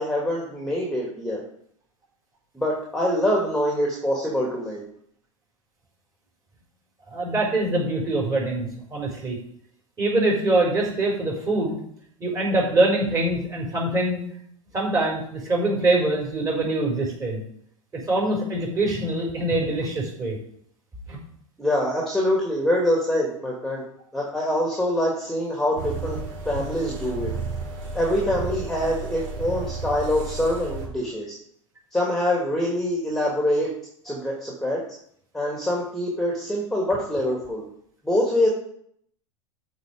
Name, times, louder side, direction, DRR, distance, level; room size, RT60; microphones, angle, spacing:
voice 1, 0.0-1.4 2.5-4.8 21.6-23.8 24.1-26.2 26.4-27.3 27.9-31.4 31.9-33.7 34.0-34.8 35.3-37.6 38.0-38.5, left 1 dB, ahead, -2 dB, 2.5 m, -24 dB
voice 2, 7.1-9.4 10.0-11.8 12.2-14.2 14.7-17.4 17.9-20.4 21.1-21.2, right 2 dB, 20° right, -1 dB, 4.7 m, -24 dB
sound 1, 25.8-30.9, right 3 dB, 60° right, 4.7 m, -33 dB
13.0 x 4.8 x 5.0 m, 0.66 s
figure-of-eight pair, 90°, 17 cm